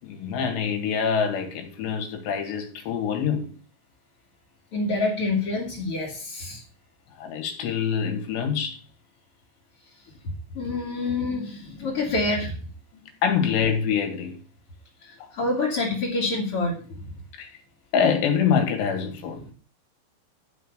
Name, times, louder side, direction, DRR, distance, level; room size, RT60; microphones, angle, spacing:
voice 1, 0.0-3.5 7.2-8.8 11.2-11.3 13.2-14.3 15.2-15.3 17.4-17.5 17.9-19.4, left 7 dB, 80° left, 4.3 m, -25 dB
voice 2, 4.7-6.6 10.5-12.5 15.0-16.7, left 2 dB, 40° left, 2.6 m, -27 dB
12.0 x 5.8 x 6.8 m
omnidirectional pair, 5.0 m